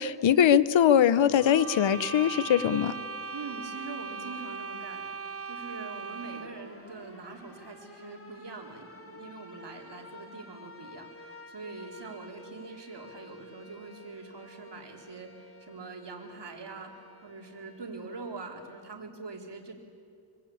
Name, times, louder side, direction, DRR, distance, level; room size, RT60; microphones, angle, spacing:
voice 1, 0.0-2.9, left 9 dB, 75° left, 16 dB, 0.9 m, -22 dB
sound 1, 1.4-6.7, right 4 dB, 30° right, 0.7 m, -39 dB
voice 2, 3.3-19.7, right 4 dB, 60° right, 2 dB, 3.9 m, -43 dB
sound 2, 6.2-18.8, left 2 dB, 30° left, 3.4 m, -51 dB
25.0 x 24.5 x 8.7 m, 2.3 s
wide cardioid pair, 80°, 47 cm